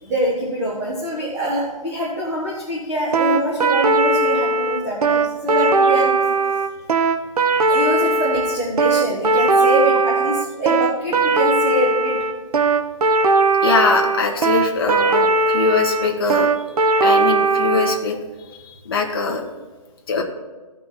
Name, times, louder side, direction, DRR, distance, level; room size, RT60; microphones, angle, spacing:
voice 1, 0.0-6.2 7.5-12.1, right 1 dB, 10° right, -6 dB, 0.9 m, -24 dB
sound 1, 3.1-18.0, right 3 dB, 80° right, 1.0 m, -18 dB
voice 2, 13.6-16.5 17.0-18.2 18.6-19.4 20.1-20.2, left 4 dB, 40° left, 0 dB, 1.3 m, -21 dB
15.5 x 5.4 x 4.2 m, 1.3 s
hypercardioid pair, 180°, 19 cm